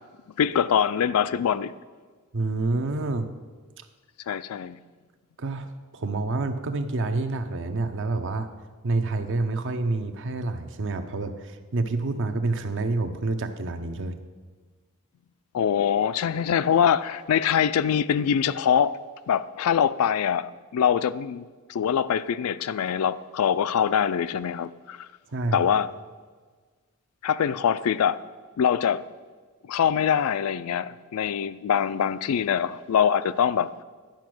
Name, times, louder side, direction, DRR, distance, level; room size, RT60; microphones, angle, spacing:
voice 1, 0.4-1.7 4.3-4.8 15.5-19.0 19.3-25.1 25.5-25.9 27.2-28.2 28.6-29.0 29.7-33.8, left 8 dB, 75° left, 0.3 m, -24 dB
voice 2, 2.3-3.3 5.4-8.5 8.8-14.2 25.3-25.6, right 3 dB, 60° right, 0.7 m, -28 dB
10.5 x 5.0 x 6.1 m
head